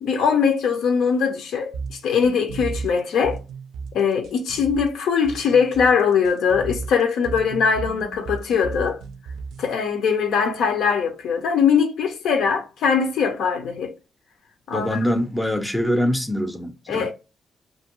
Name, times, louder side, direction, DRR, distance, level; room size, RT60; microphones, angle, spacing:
voice 1, 0.0-3.4 3.9-9.0 9.6-13.9 14.7-15.0 16.9-17.1, left 6 dB, 85° left, 0.6 m, -21 dB
sound 1, 1.7-9.7, right 5 dB, 75° right, 0.3 m, -34 dB
voice 2, 14.7-17.1, equal, 5° left, 0.4 m, -24 dB
2.6 x 2.4 x 2.9 m
cardioid pair, 160°, 0 cm